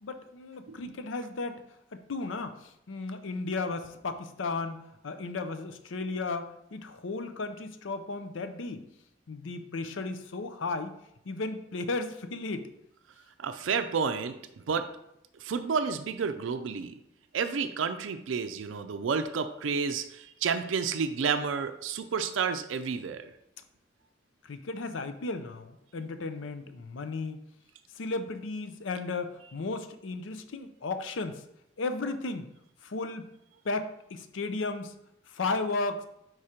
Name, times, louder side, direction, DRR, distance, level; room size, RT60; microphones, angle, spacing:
voice 1, 0.0-1.6 2.1-4.8 5.0-8.8 9.3-11.0 11.3-12.7 24.4-27.4 27.9-31.4 31.8-32.5 32.8-33.3 33.6-34.9 35.3-36.1, left 3 dB, 80° left, 9 dB, 0.6 m, -34 dB
voice 2, 13.4-14.4 14.7-14.9 15.4-16.9 17.3-23.3, right 5 dB, 80° right, 8 dB, 0.4 m, -30 dB
4.7 x 4.3 x 4.9 m, 0.80 s
head